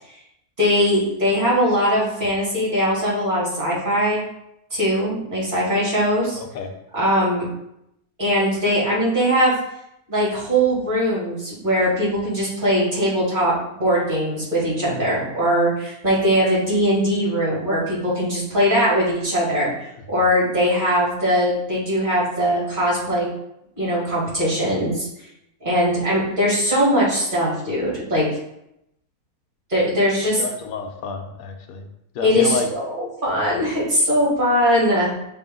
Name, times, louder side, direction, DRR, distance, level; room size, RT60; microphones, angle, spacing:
voice 1, 0.6-4.2 4.7-6.4 6.9-7.5 8.2-9.5 10.1-23.3 23.8-25.1 25.6-28.3 29.7-30.4 32.2-35.1, equal, 30° right, -6 dB, 2.7 m, -20 dB
voice 2, 6.4-6.7 30.4-31.9 32.1-32.7, left 4 dB, 70° left, 6 dB, 1.2 m, -29 dB
6.6 x 3.8 x 3.8 m, 0.82 s
omnidirectional pair, 1.6 m